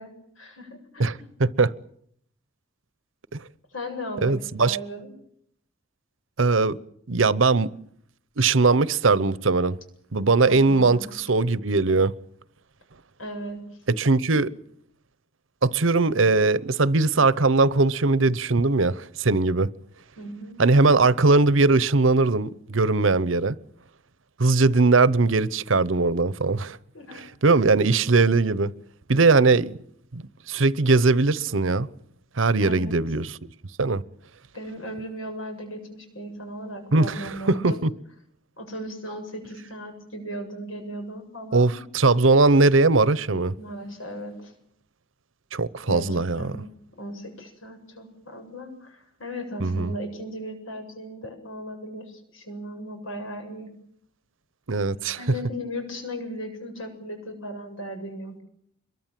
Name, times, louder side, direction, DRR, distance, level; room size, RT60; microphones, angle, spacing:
voice 1, 0.0-1.3 3.7-5.1 10.5-11.2 13.2-13.6 20.2-20.6 26.9-27.5 32.6-33.0 34.5-37.8 38.6-41.8 43.6-44.5 45.9-46.7 47.0-53.7 55.1-58.4, equal, 90° left, 7.8 m, -37 dB
voice 2, 1.4-1.7 3.3-3.4 4.2-4.8 6.4-6.8 7.1-7.7 8.4-9.8 10.1-12.1 13.9-14.5 15.6-19.7 20.6-23.5 24.4-26.8 27.4-28.7 29.1-29.8 30.1-31.9 32.4-33.3 33.8-34.0 36.9-37.7 41.5-43.5 45.5-46.5 49.6-49.9 54.7-55.2, right 3 dB, 80° right, 0.9 m, -20 dB
26.0 x 23.0 x 7.6 m
head